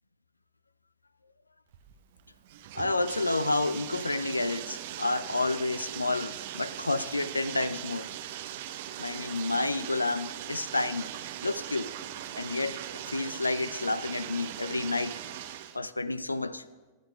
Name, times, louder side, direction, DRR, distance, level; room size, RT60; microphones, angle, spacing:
Bathtub (filling or washing), 1.7-15.8, right 12 dB, 55° right, 0.6 m, -40 dB
voice 1, 2.7-8.1 9.0-11.1 11.4-11.9 12.4-15.2 15.7-16.6, left 2 dB, 80° left, 0.4 m, -30 dB
23.0 x 12.0 x 2.2 m
figure-of-eight pair, 90°, 0 cm